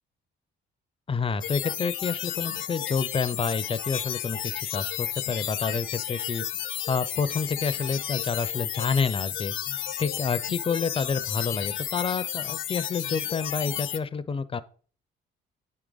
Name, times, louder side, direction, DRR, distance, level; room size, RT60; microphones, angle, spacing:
voice 1, 1.1-6.4 6.9-9.5 10.0-14.6, left 5 dB, 25° left, 13 dB, 0.5 m, -29 dB
sound 1, 1.4-14.0, left 11 dB, 75° left, 0.7 m, -32 dB
8.5 x 4.8 x 3.9 m, 0.42 s
cardioid pair, 90°, 20 cm